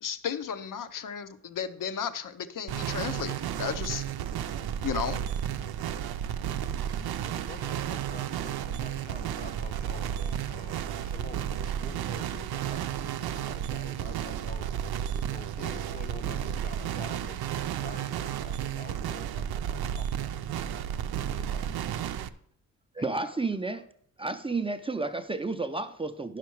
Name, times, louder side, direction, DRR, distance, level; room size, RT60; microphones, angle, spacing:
voice 1, 0.0-4.0 4.8-5.2, left 7 dB, 60° left, 12 dB, 0.7 m, -34 dB
sound 1, 2.7-22.3, right 9 dB, 85° right, 0.6 m, -32 dB
voice 2, 7.2-14.7 15.1-20.8 21.3-22.0 23.0-23.4 23.7-23.8, left 4 dB, 25° left, 10 dB, 0.7 m, -48 dB
sound 2, 7.9-13.6, left 1 dB, 85° left, 2.7 m, -61 dB
voice 3, 22.9-23.8 24.2-26.4, right 3 dB, 15° right, 8 dB, 0.5 m, -31 dB
10.0 x 5.9 x 4.6 m, 0.65 s
cardioid pair, 100°, 36 cm